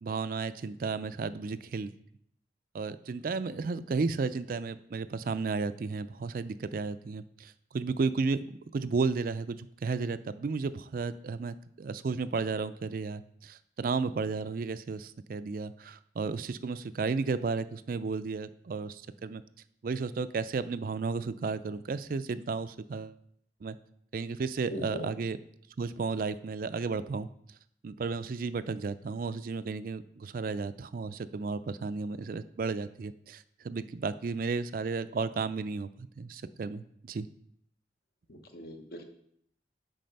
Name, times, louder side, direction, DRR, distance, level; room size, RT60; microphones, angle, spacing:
voice 1, 0.0-1.9 2.7-8.4 8.7-19.4 19.8-23.2 23.6-23.8 24.1-25.4 25.8-27.3 27.8-37.3, right 4 dB, 50° right, 13 dB, 0.4 m, -33 dB
voice 2, 24.7-25.1 38.3-39.0, equal, 55° left, 5 dB, 1.0 m, -40 dB
7.6 x 4.7 x 5.3 m, 0.68 s
head